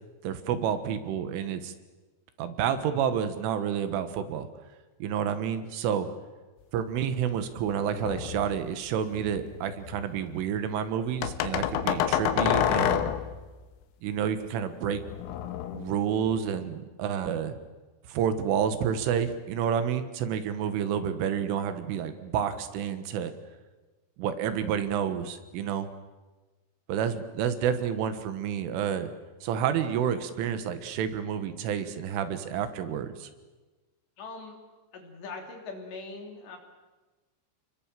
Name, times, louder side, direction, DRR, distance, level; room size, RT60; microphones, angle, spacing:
voice 1, 0.2-1.7 2.4-4.5 5.0-6.1 6.7-13.1 14.0-15.0 15.7-17.5 18.1-23.3 24.2-25.9 26.9-29.1 29.4-33.3, right 8 dB, 75° right, 10 dB, 3.8 m, -29 dB
sound 1, 8.0-8.6 9.1-10.0 11.2-13.4 14.9-16.4, left 10 dB, 85° left, 3.8 m, -28 dB
voice 2, 34.2-34.6 34.9-36.6, left 3 dB, 60° left, 3 dB, 5.1 m, -41 dB
30.0 x 22.0 x 7.5 m, 1.2 s
omnidirectional pair, 5.8 m